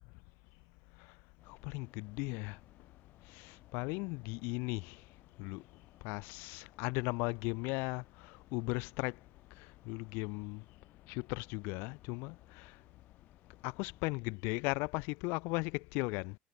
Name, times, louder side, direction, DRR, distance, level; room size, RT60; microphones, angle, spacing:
sound 1, 1.4-14.0, left 13 dB, 45° left, 6.7 m, -62 dB
voice 1, 1.5-2.6 3.3-5.0 5.4-5.6 6.0-9.2 9.6-10.6 11.1-12.7 13.6-16.3, left 29 dB, 65° left, 0.5 m, -37 dB
supercardioid pair, 140°, 4 cm